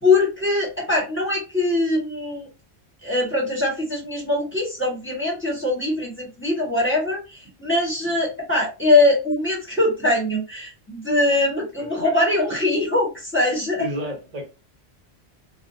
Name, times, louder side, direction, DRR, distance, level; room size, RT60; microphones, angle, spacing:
voice 1, 0.0-2.5 3.0-13.8, left 2 dB, 10° left, 1.0 m, -22 dB
voice 2, 13.8-14.5, equal, 40° right, 0.9 m, -30 dB
2.6 x 2.1 x 2.6 m
omnidirectional pair, 1.1 m